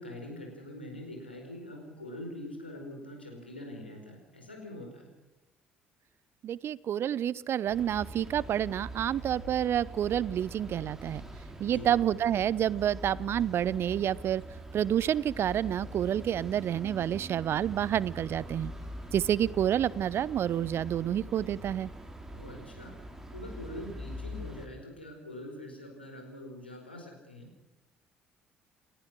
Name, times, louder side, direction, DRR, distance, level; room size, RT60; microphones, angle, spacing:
voice 1, 0.0-5.1 11.6-11.9 22.3-22.9 23.3-27.5, left 1 dB, 90° left, 2 dB, 4.8 m, -44 dB
voice 2, 6.4-11.2 11.6-14.4 14.7-18.7 19.1-21.9, right 10 dB, 50° right, 21 dB, 0.7 m, -29 dB
sound 1, 7.7-24.7, right 1 dB, 10° right, 4.4 m, -43 dB
29.5 x 14.5 x 6.3 m, 1.1 s
figure-of-eight pair, 50°, 5 cm